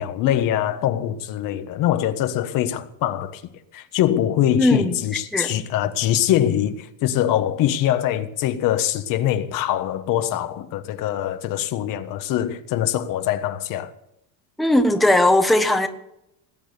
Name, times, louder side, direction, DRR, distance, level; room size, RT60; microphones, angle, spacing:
voice 1, 0.0-3.4 3.7-13.9, left 11 dB, 55° left, 1.4 m, -23 dB
voice 2, 4.6-5.0 5.3-5.5 14.6-15.9, left 1 dB, ahead, 1.1 m, -18 dB
19.5 x 8.8 x 8.3 m
cardioid pair, 150°, 38 cm